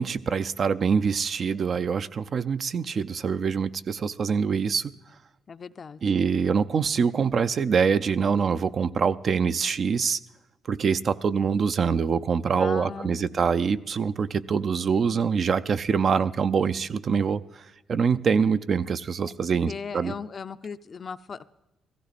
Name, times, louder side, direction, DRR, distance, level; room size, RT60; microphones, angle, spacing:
voice 1, 0.0-4.9 6.0-10.2 10.7-17.6 17.9-20.1, right 6 dB, 50° right, 12 dB, 0.5 m, -24 dB
voice 2, 5.5-6.3 12.6-13.4 19.7-21.5, left 5 dB, 45° left, 12 dB, 0.5 m, -38 dB
16.0 x 15.0 x 4.1 m, 0.98 s
cardioid pair, 90°, 0 cm